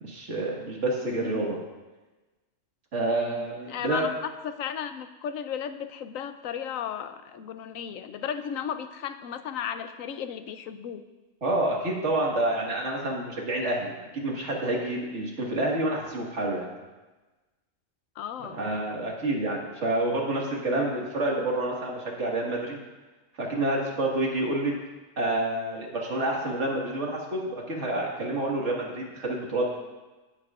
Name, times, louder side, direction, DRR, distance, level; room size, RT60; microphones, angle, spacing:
voice 1, 0.0-1.6 2.9-4.1 11.4-16.7 18.5-22.8 23.4-24.7 25.2-29.7, right 2 dB, 60° right, -2 dB, 2.0 m, -28 dB
voice 2, 1.1-1.5 3.1-11.0 18.2-18.7, left 8 dB, 85° left, 10 dB, 1.0 m, -35 dB
16.0 x 7.5 x 2.4 m, 1.2 s
omnidirectional pair, 1.4 m